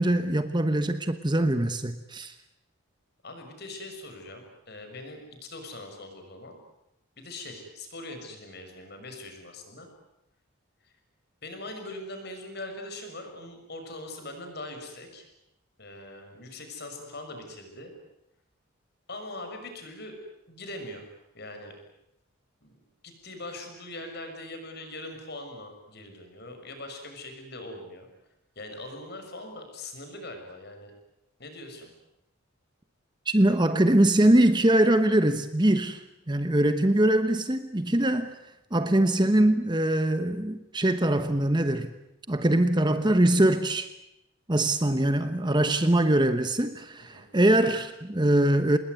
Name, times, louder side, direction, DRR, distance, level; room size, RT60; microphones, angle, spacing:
voice 1, 0.0-2.3 33.3-38.4 38.7-41.9 42.3-43.9 44.5-48.8, right 1 dB, 20° right, 1.1 m, -23 dB
voice 2, 3.2-6.6 7.2-9.9 10.8-10.9 11.4-15.3 15.8-17.9 19.1-20.1 20.5-21.7 22.6-22.8 23.0-28.1 28.5-30.9 31.4-31.9 47.1-47.2, left 2 dB, 50° left, 6.3 m, -41 dB
27.0 x 20.5 x 9.5 m
head